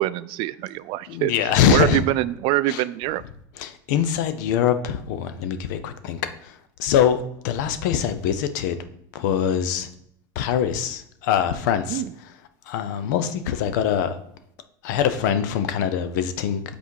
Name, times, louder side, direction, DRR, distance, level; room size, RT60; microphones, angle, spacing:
voice 1, 0.0-1.3 1.7-3.2 11.9-12.1, right 16 dB, 60° right, 0.3 m, -24 dB
voice 2, 1.1-2.0 2.7-2.8 3.6-7.2 7.4-8.8 9.1-9.9 10.4-12.0 12.7-14.2 14.8-16.6, left 9 dB, 80° left, 0.7 m, -23 dB
5.8 x 4.2 x 4.7 m
supercardioid pair, 110°, 10 cm